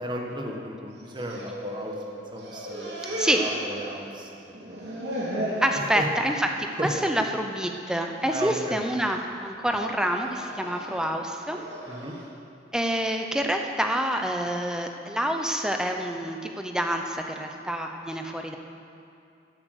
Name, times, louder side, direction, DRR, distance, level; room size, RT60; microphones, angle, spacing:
voice 1, 0.0-1.9 2.3-4.3 4.6-5.3 5.7-6.1 6.8-6.9 8.3-8.8 11.9-12.1, right 1 dB, 25° right, 0 dB, 1.4 m, -35 dB
sound 1, 1.0-2.1 2.4-4.2 4.5-5.7 6.2-6.5 6.9-7.1 7.9-8.3 8.8-9.2 10.0-12.2, equal, 80° right, 2.8 m, -35 dB
voice 2, 5.6-11.6 12.7-18.6, right 1 dB, 5° right, 3 dB, 0.8 m, -27 dB
14.5 x 8.2 x 6.6 m, 2.5 s
head